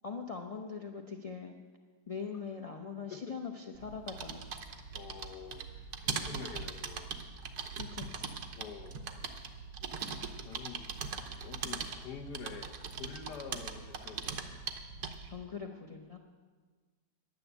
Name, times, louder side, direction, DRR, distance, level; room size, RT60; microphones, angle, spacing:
voice 1, 0.0-1.5 2.1-4.5 7.8-8.3 15.3-16.2, left 5 dB, 55° left, 3 dB, 0.4 m, -42 dB
sound 1, 3.7-15.4, right 6 dB, 75° right, 1.4 m, -41 dB
voice 2, 4.9-7.1 8.6-9.0 9.9-10.9 11.4-14.6, left 6 dB, 75° left, 6 dB, 1.6 m, -47 dB
10.5 x 9.7 x 8.0 m, 1.5 s
omnidirectional pair, 1.8 m